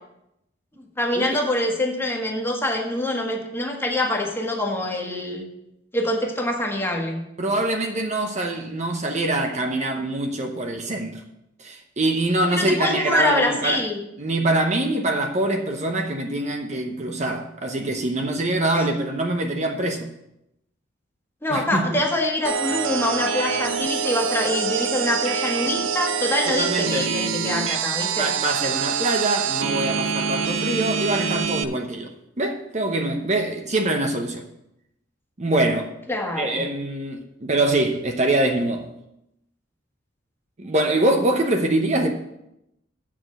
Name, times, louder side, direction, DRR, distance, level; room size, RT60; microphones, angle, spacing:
voice 1, 1.0-5.5 5.9-7.2 12.5-14.0 18.7-18.8 21.4-28.3 36.1-36.6, left 1 dB, 10° left, 1.5 m, -25 dB
voice 2, 7.4-11.2 11.6-13.8 14.2-20.1 21.5-22.0 26.5-27.1 28.2-34.4 35.4-35.9 36.4-38.9 40.6-42.1, right 2 dB, 35° right, 0.8 m, -24 dB
sound 1, 22.4-31.6, right 6 dB, 90° right, 0.7 m, -25 dB
7.6 x 6.1 x 7.8 m
head